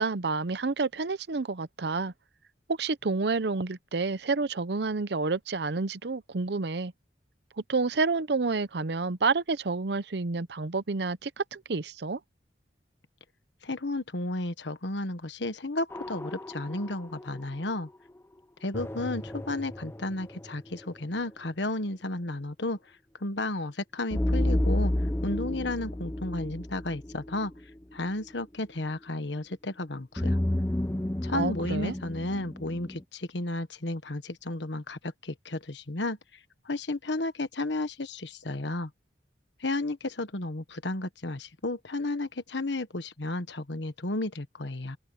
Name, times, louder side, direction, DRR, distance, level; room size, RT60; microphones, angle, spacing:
voice 1, 0.0-2.1 2.7-6.9 7.7-12.2 31.3-31.9, right 4 dB, 65° right, 0.7 m, -29 dB
voice 2, 13.6-17.9 18.6-22.8 23.2-24.9 25.2-27.5 27.9-30.4 31.2-36.2 36.6-38.9 39.6-45.0, left 2 dB, 75° left, 1.4 m, -33 dB
sound 1, 15.9-17.7 18.7-20.9 24.1-27.8 30.2-33.0, left 1 dB, 15° left, 0.6 m, -31 dB
open air
head